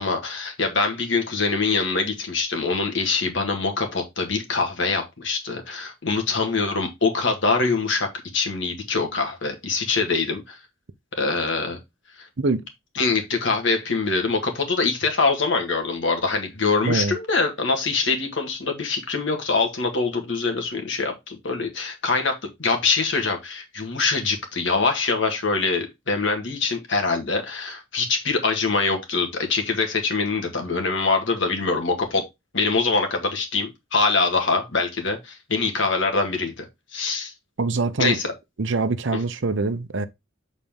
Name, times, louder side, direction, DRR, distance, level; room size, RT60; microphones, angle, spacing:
voice 1, 0.0-10.6 11.2-11.8 12.2-12.3 13.0-32.2 32.5-36.6 36.9-37.3 38.0-38.3, left 4 dB, 65° left, 1.8 m, -24 dB
voice 2, 16.8-17.1 37.6-38.2 38.6-40.1, right 3 dB, 60° right, 0.7 m, -24 dB
7.2 x 4.1 x 3.6 m
head